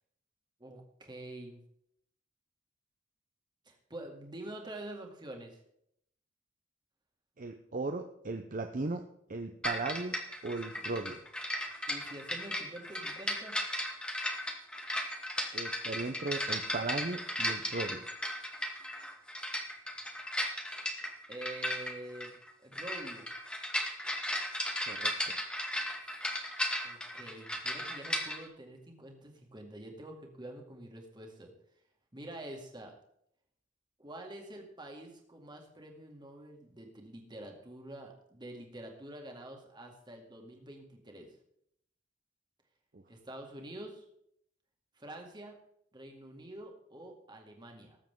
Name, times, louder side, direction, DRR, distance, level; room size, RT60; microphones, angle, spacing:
voice 1, 0.6-1.6 3.7-5.6 11.9-13.5 21.3-22.3 22.6-23.3 26.1-26.2 26.8-31.5 32.1-32.9 34.0-41.3 43.1-44.0 45.0-45.6 45.9-48.0, right 1 dB, 25° right, 2 dB, 2.0 m, -47 dB
voice 2, 7.4-9.0 9.3-10.2 10.4-11.2 15.5-18.0 24.9-25.4 42.9-43.0, right 3 dB, 45° right, 6 dB, 0.7 m, -37 dB
sound 1, 9.6-28.4, left 1 dB, 5° left, 1.2 m, -36 dB
19.0 x 7.4 x 3.7 m, 0.72 s
head